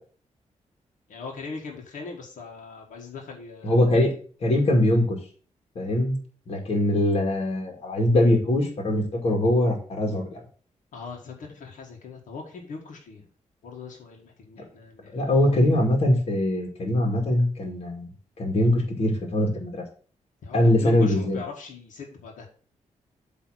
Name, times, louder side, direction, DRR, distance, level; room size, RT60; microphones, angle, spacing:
voice 1, 1.1-3.8 10.9-13.3 13.6-15.4 20.4-22.5, left 4 dB, 85° left, 0 dB, 1.8 m, -40 dB
voice 2, 3.6-5.2 5.8-6.2 6.5-10.4 15.1-18.1 18.4-19.8 20.5-21.4, left 1 dB, 50° left, 1 dB, 2.1 m, -22 dB
8.3 x 3.4 x 6.3 m, 0.42 s
wide cardioid pair, 160°, 13 cm